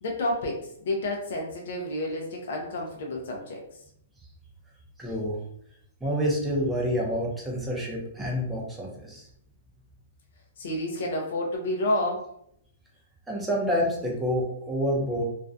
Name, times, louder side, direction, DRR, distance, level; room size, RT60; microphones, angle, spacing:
voice 1, 0.0-3.6 10.6-12.3, left 1 dB, 65° left, 0 dB, 0.5 m, -30 dB
voice 2, 5.0-5.4 6.0-9.2 13.3-15.2, equal, 5° right, -3 dB, 0.6 m, -28 dB
2.4 x 2.2 x 2.5 m, 0.71 s
hypercardioid pair, 160°, 0 cm